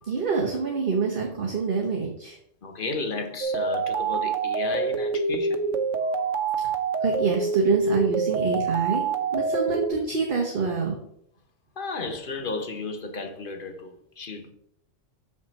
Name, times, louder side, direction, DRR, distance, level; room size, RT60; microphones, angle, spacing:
voice 1, 0.1-2.4 7.0-9.1 9.3-11.0, right 5 dB, 45° right, 1.3 m, -26 dB
voice 2, 2.6-5.6 6.0-6.9 11.8-14.5, left 3 dB, 45° left, 1.1 m, -34 dB
sound 1, 3.4-9.9, right 4 dB, 85° right, 1.2 m, -26 dB
6.9 x 6.0 x 4.1 m
omnidirectional pair, 1.3 m